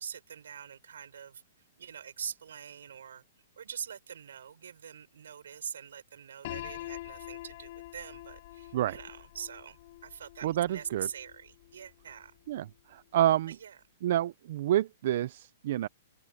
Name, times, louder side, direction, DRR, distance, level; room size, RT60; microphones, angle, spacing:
voice 1, 0.0-1.4 1.8-3.2 3.6-12.4 13.5-13.8, right 8 dB, 85° right, 6.4 m, -43 dB
Piano, 6.4-12.3, left 16 dB, 50° left, 4.7 m, -45 dB
voice 2, 10.4-11.1 12.5-13.6 14.0-15.9, right 12 dB, 55° right, 0.6 m, -28 dB
open air
hypercardioid pair, 150°, 0 cm